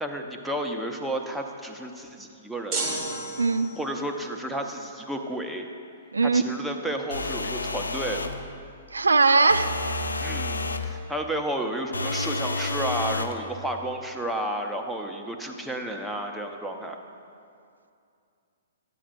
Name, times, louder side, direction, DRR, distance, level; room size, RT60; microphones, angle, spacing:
voice 1, 0.0-2.8 3.8-5.7 6.2-8.3 10.2-17.0, right 1 dB, 5° right, 2 dB, 0.6 m, -32 dB
sound 1, 2.7-4.0, right 2 dB, 30° right, 1.4 m, -32 dB
voice 2, 3.4-3.7 6.1-6.4 8.9-9.7, right 4 dB, 85° right, 12 dB, 0.3 m, -20 dB
sound 2, 7.1-8.4 9.5-10.9 11.9-13.4, left 2 dB, 85° left, 0.5 m, -30 dB
11.5 x 8.5 x 2.6 m, 2.4 s
hypercardioid pair, 120°, 0 cm